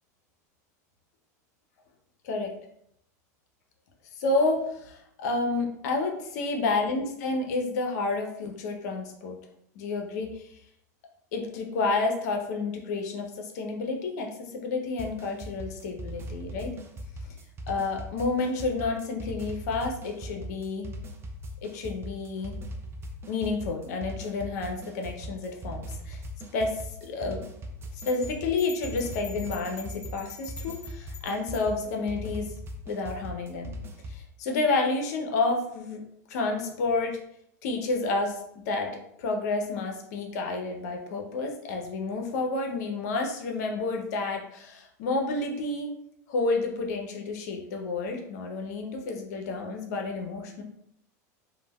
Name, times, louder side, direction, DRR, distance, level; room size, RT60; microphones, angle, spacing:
voice 1, 4.2-9.4 9.7-10.5 11.3-16.7 17.7-20.9 21.6-22.6 23.3-26.2 26.5-27.4 28.1-32.5 32.9-33.7 34.1-36.0 36.3-37.2 37.6-38.9 39.2-45.9 46.3-50.6, left 3 dB, 70° left, 2 dB, 0.6 m, -30 dB
sound 1, 15.0-34.2, equal, 25° right, 0.4 m, -39 dB
sound 2, 28.0-31.7, left 4 dB, 35° left, 1.3 m, -45 dB
3.1 x 2.1 x 2.2 m, 0.74 s
hypercardioid pair, 105°, 9 cm